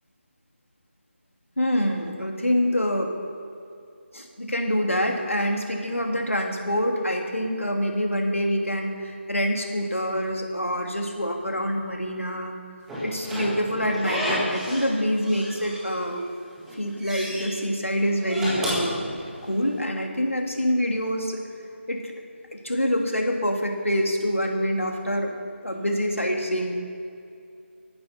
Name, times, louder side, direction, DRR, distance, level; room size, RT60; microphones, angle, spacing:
voice 1, 1.6-3.1 4.1-12.6 13.0-16.2 16.8-19.0 19.4-21.4 21.9-22.0 22.5-25.3 25.6-26.7, equal, 85° left, 2 dB, 2.4 m, -26 dB
Slam / Squeak, 12.9-14.9 15.2-16.2 16.6-17.5 18.1-19.7, equal, 5° right, 1.6 m, -31 dB
14.5 x 10.5 x 5.7 m, 2.5 s
figure-of-eight pair, 160°, 7 cm